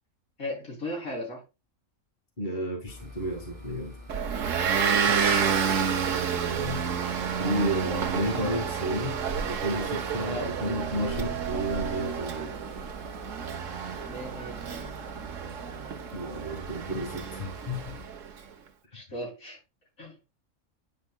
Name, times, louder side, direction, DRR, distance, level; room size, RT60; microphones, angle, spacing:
voice 1, 0.4-1.4 6.0-6.2 10.2-10.5 14.0-14.9 18.9-19.6 20.0-20.2, left 1 dB, 85° left, 3.8 m, -37 dB
voice 2, 2.4-3.9 7.4-9.2 9.4-12.5 16.1-18.0, equal, 35° left, 2.1 m, -32 dB
sound 1, 2.9-18.1, left 1 dB, 5° left, 3.0 m, -47 dB
Motor vehicle (road) / Engine, 4.1-18.3, right 7 dB, 70° right, 1.3 m, -30 dB
9.9 x 4.6 x 2.3 m
omnidirectional pair, 1.4 m